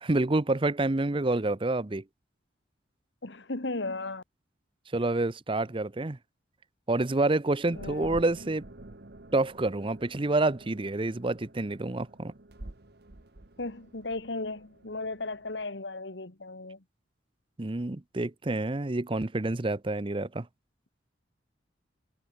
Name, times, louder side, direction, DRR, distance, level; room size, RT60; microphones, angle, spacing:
voice 1, 0.0-2.0 4.9-6.2 6.9-8.6 9.3-12.3 17.6-20.5, right 2 dB, 25° right, 0.7 m, -28 dB
voice 2, 3.2-4.2 7.8-8.2 13.6-16.8, left 2 dB, 65° left, 1.8 m, -36 dB
sound 1, 7.7-15.7, right 1 dB, 55° right, 1.5 m, -49 dB
head